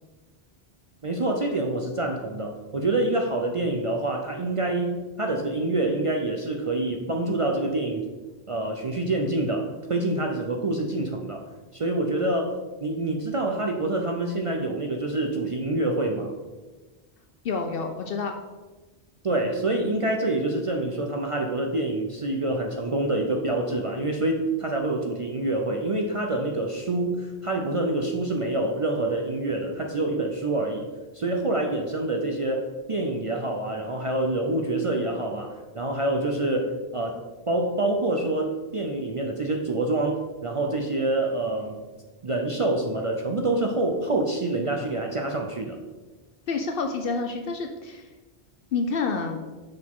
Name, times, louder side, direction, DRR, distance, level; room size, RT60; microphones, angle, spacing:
voice 1, 1.0-8.1 8.5-11.4 11.7-16.3 19.2-30.9 31.1-37.2 37.5-41.8 42.2-45.8, right 2 dB, 45° right, 1 dB, 0.4 m, -26 dB
voice 2, 17.4-18.3 46.5-48.1 48.7-49.4, left 4 dB, 65° left, 4 dB, 0.7 m, -28 dB
6.2 x 4.8 x 3.6 m, 1.2 s
omnidirectional pair, 1.1 m